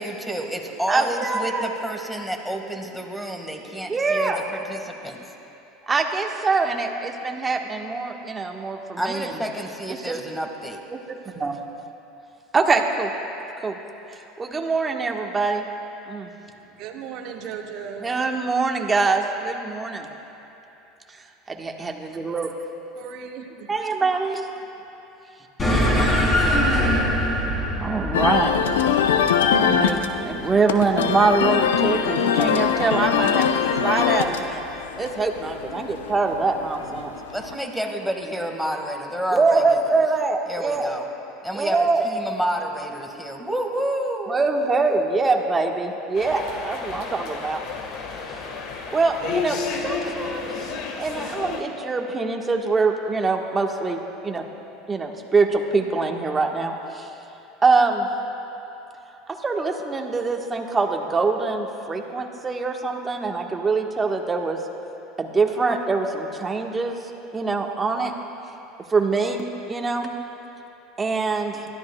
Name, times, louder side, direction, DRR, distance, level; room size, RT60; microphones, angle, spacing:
voice 1, 0.0-5.2 9.0-10.8 37.3-39.8 40.5-41.1 41.4-44.3, right 1 dB, ahead, 2 dB, 1.7 m, -29 dB
voice 2, 0.9-1.7 3.9-4.4 5.9-9.3 9.9-10.2 10.9-11.6 12.5-13.1 13.6-13.8 14.4-15.7 16.1-16.3 18.0-20.1 21.1-22.5 23.7-24.5 27.8-28.5 29.5-33.5 33.8-34.6 35.0-37.1 39.3-40.9 41.5-42.1 44.3-47.6 48.9-49.6 49.8-50.5 51.0-54.4 54.9-57.1 57.6-58.1 59.3-64.6 65.2-67.0 67.3-68.1 68.9-70.1 71.0-71.7, right 4 dB, 25° right, 2 dB, 1.3 m, -24 dB
voice 3, 16.5-18.2 23.0-23.7, right 7 dB, 60° right, 3 dB, 1.2 m, -37 dB
sound 1, 25.6-30.4, equal, 25° left, 3.3 m, -22 dB
sound 2, 28.1-37.5, left 7 dB, 80° left, 0.6 m, -23 dB
sound 3, 46.1-51.6, left 5 dB, 60° left, 1.4 m, -31 dB
22.5 x 13.5 x 2.3 m, 2.9 s
hypercardioid pair, 80°, 0 cm